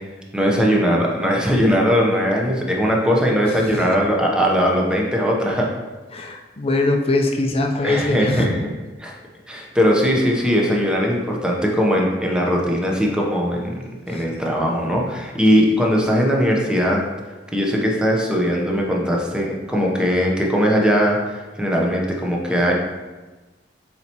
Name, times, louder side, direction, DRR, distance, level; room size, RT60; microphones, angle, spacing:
voice 1, 0.3-5.7 7.8-8.7 9.0-9.1 9.5-13.7 14.1-17.0 17.5-22.7, equal, 5° right, -2 dB, 0.9 m, -19 dB
voice 2, 6.1-8.5, left 2 dB, 35° left, 3 dB, 0.6 m, -21 dB
7.6 x 4.3 x 3.0 m, 1.2 s
head